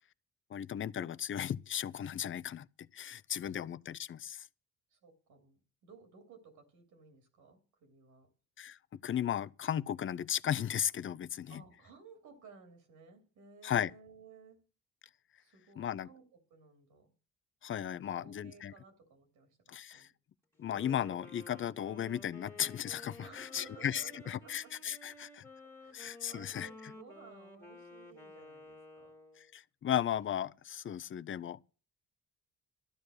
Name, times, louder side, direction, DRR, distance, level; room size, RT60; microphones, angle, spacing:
voice 1, 0.5-2.7 2.9-4.5 8.6-11.6 13.6-13.9 15.8-16.1 17.6-18.7 19.7-20.1 20.6-25.4 25.9-26.7 29.4-31.7, left 10 dB, 40° left, 0.6 m, -36 dB
voice 2, 4.9-8.3 11.3-14.6 15.4-17.1 17.8-19.6 19.9-20.1 23.2-25.0 25.8-29.2, right 4 dB, 85° right, 3.0 m, -57 dB
Wind instrument woodwind instrument, 20.6-29.5, left 2 dB, 10° left, 2.1 m, -53 dB
12.5 x 9.6 x 6.3 m
cardioid pair, 90°, 30 cm